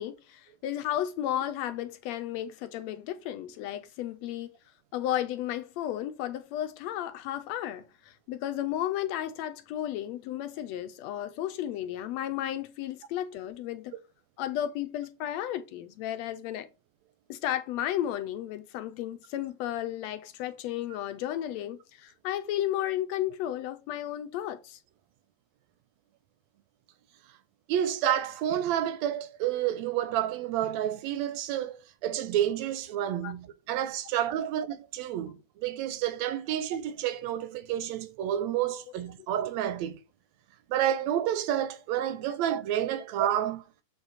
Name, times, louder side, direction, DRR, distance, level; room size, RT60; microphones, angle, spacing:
voice 1, 0.0-4.5 4.9-13.9 14.4-16.7 17.3-24.8 33.2-33.4, left 12 dB, 75° left, 1.7 m, -33 dB
voice 2, 27.7-40.0 40.7-43.6, right 11 dB, 80° right, 1.8 m, -29 dB
7.1 x 4.8 x 4.0 m
omnidirectional pair, 3.3 m